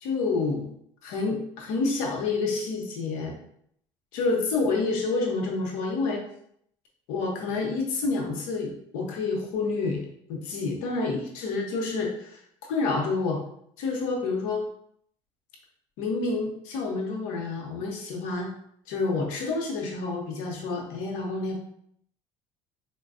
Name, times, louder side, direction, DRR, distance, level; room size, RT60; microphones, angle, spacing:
voice 1, 0.0-0.7 1.0-3.4 4.1-6.2 7.1-12.4 12.7-13.4 13.8-14.7 16.0-18.5 18.9-21.6, left 3 dB, 80° left, 0 dB, 0.8 m, -28 dB
4.1 x 2.2 x 2.4 m, 0.69 s
supercardioid pair, 85°, 14 cm